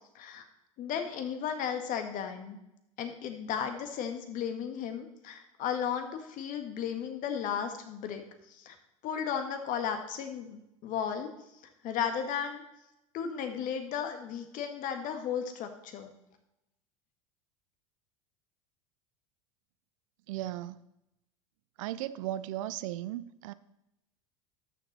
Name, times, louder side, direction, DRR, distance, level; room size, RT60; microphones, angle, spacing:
voice 1, 0.8-2.6 3.0-8.2 8.6-8.8 9.0-11.3 11.8-12.6 13.1-16.1, left 8 dB, 50° left, 6 dB, 1.8 m, -34 dB
voice 2, 20.3-20.8 21.8-23.5, right 13 dB, 65° right, 16 dB, 0.6 m, -36 dB
13.0 x 6.8 x 4.3 m, 0.87 s
hypercardioid pair, 90°, 18 cm